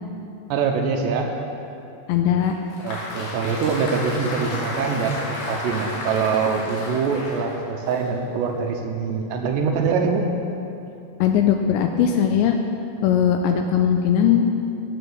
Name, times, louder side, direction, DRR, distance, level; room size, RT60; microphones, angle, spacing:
voice 1, 0.5-1.3 2.8-10.3, right 5 dB, 75° right, 3 dB, 2.8 m, -24 dB
voice 2, 2.1-2.6 11.2-12.6 13.0-14.4, left 9 dB, 85° left, 5 dB, 2.6 m, -19 dB
Applause, 2.4-8.7, left 2 dB, 55° left, 3.3 m, -33 dB
16.5 x 7.5 x 6.4 m, 2.7 s
omnidirectional pair, 5.6 m